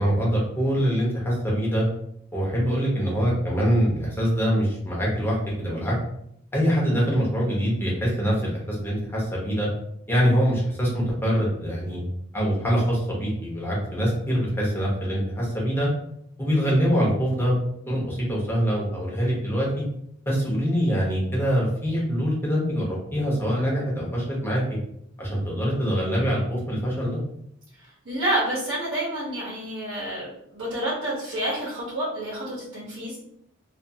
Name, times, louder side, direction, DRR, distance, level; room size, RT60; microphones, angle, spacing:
voice 1, 0.0-1.8 2.3-5.9 6.5-9.7 10.1-12.0 12.3-15.9 16.4-17.6 17.9-19.8 20.3-24.6 25.2-27.2, equal, 10° left, -5 dB, 0.9 m, -24 dB
voice 2, 27.8-33.2, right 1 dB, 65° right, -8 dB, 0.9 m, -29 dB
2.5 x 2.4 x 2.6 m, 0.72 s
head